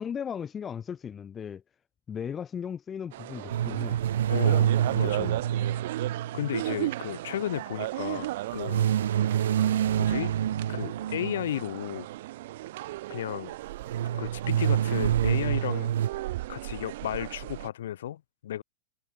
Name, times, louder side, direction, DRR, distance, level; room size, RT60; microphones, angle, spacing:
voice 1, 0.0-1.6 2.1-4.0 4.5-5.4, left 7 dB, 15° left, 0.5 m, -37 dB
sound 1, 3.1-17.7, right 17 dB, 55° right, 1.0 m, -36 dB
sound 2, 3.5-7.0 8.7-11.8 13.9-16.1, right 10 dB, 90° right, 0.5 m, -27 dB
voice 2, 4.3-5.4 6.3-8.9 9.2-9.4 10.0-10.3 10.7-12.1 13.1-13.5 14.2-15.9 16.5-18.6, left 11 dB, 75° left, 2.2 m, -34 dB
supercardioid pair, 170°, 0 cm